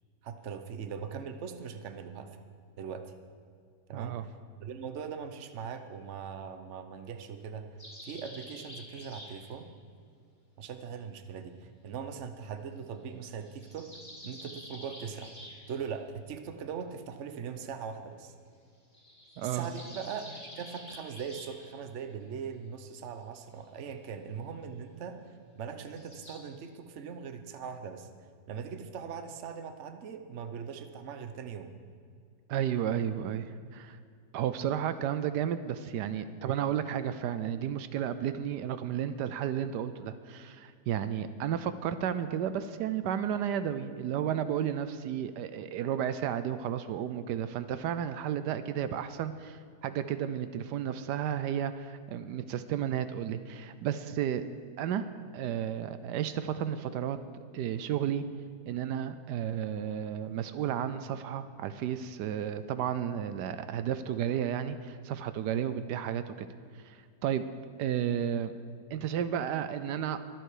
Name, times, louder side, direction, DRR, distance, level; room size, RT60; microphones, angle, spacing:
voice 1, 0.2-2.3 2.8-3.1 3.9-4.3 4.6-7.7 8.0-9.7 10.6-13.9 14.2-18.3 19.4-25.2 25.5-28.1 28.5-31.7, right 6 dB, 50° right, 8 dB, 1.0 m, -40 dB
voice 2, 3.9-4.2 19.4-19.7 32.5-34.0 34.3-54.4 54.8-55.1 55.3-57.2 57.5-58.2 58.7-66.3 66.8-67.5 67.8-68.5 68.9-70.2, right 9 dB, 85° right, 11 dB, 1.2 m, -32 dB
sound 1, 7.8-9.5 13.3-15.8 18.9-21.7 25.8-26.3, left 1 dB, 25° left, 3.9 m, -48 dB
23.0 x 7.8 x 4.9 m, 2.2 s
omnidirectional pair, 1.8 m